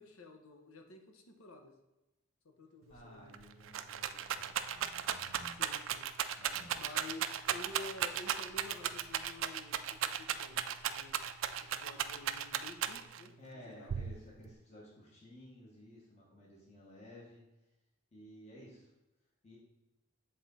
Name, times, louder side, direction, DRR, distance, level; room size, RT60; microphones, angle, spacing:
voice 1, 0.0-1.7 2.4-3.3 5.6-6.1 6.7-11.2 11.6-14.0, left 2 dB, 80° left, 4 dB, 1.0 m, -51 dB
voice 2, 2.9-5.7 6.4-6.8 13.4-17.4 18.1-18.9 19.4-19.6, left 1 dB, 30° left, -4 dB, 1.3 m, -55 dB
Rattle, 3.0-3.1 3.3-13.3 13.9-14.5, right 9 dB, 65° right, 0.3 m, -36 dB
7.7 x 3.9 x 4.0 m, 0.99 s
head